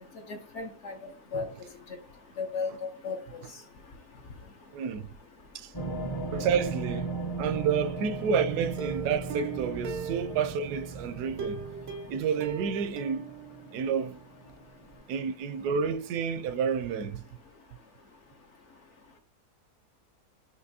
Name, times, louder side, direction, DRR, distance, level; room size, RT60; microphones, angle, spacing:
voice 1, 0.3-0.9 1.3-1.5 2.4-3.2, left 5 dB, 55° left, 1.0 m, -34 dB
voice 2, 4.7-5.1 5.5-5.7 6.3-7.1 7.4-11.6 12.1-13.3 13.7-14.2 15.1-17.2, right 6 dB, 80° right, 1.1 m, -30 dB
sound 1, 5.7-15.0 15.6-15.7, right 3 dB, 25° left, 0.5 m, -37 dB
Plucked string instrument, 8.8-10.8 11.4-14.2 14.5-14.6 14.9-15.0, right 6 dB, 60° right, 0.7 m, -39 dB
6.0 x 2.8 x 2.7 m
omnidirectional pair, 1.7 m